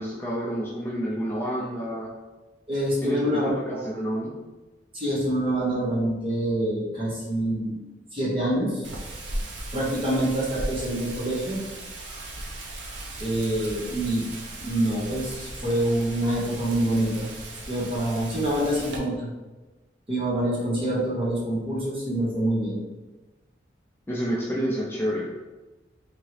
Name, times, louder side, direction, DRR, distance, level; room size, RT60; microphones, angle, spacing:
voice 1, 0.0-2.1 3.0-4.3 24.1-25.3, equal, 10° left, -6 dB, 0.5 m, -29 dB
voice 2, 2.7-3.9 4.9-7.8 8.1-8.8 9.7-11.6 13.2-14.3 14.6-17.3 17.6-19.3 20.1-22.8, right 1 dB, 30° right, -6 dB, 1.1 m, -26 dB
Wind, 8.8-19.0, right 1 dB, 80° right, 0.7 m, -37 dB
3.6 x 2.9 x 3.2 m, 1.1 s
head